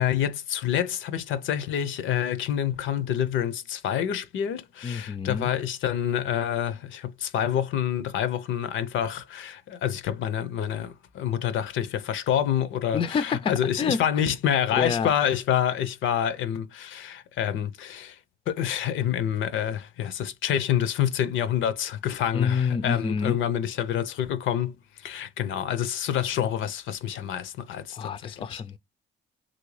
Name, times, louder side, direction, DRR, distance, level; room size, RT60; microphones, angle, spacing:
voice 1, 0.0-18.2 18.5-24.7 25.0-28.6, left 10 dB, 75° left, 0.6 m, -27 dB
voice 2, 4.8-5.5 12.9-14.0 14.8-15.1 22.3-23.4 27.9-28.8, left 6 dB, 25° left, 0.4 m, -27 dB
3.1 x 2.6 x 3.1 m
cardioid pair, 90°, 20 cm